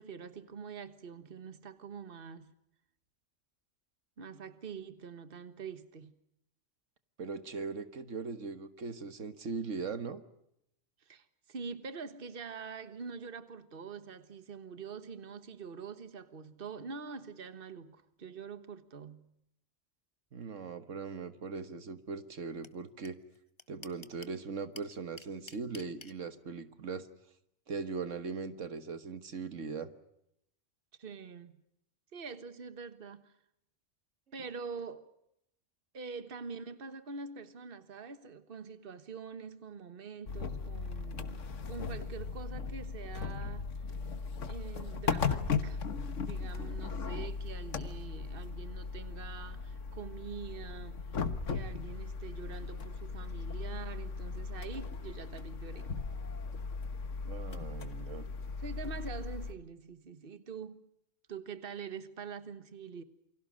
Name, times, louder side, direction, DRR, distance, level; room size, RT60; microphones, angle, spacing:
voice 1, 0.0-2.5 4.2-6.1 11.0-19.3 31.0-31.5 32.1-33.3 34.3-35.1 35.9-43.7 44.5-51.2 51.5-55.9 58.6-60.8 61.3-63.0, right 5 dB, 50° right, 1.6 m, -45 dB
voice 2, 7.2-10.2 20.3-23.2 23.7-27.1 27.7-29.9 57.2-58.3, right 4 dB, 80° right, 1.7 m, -40 dB
sound 1, 22.6-22.7 23.0-23.1 23.3-24.4 24.7-26.1, left 3 dB, 25° left, 1.0 m, -48 dB
sound 2, 40.3-59.5, left 5 dB, 80° left, 1.7 m, -37 dB
28.5 x 24.5 x 6.3 m
omnidirectional pair, 1.3 m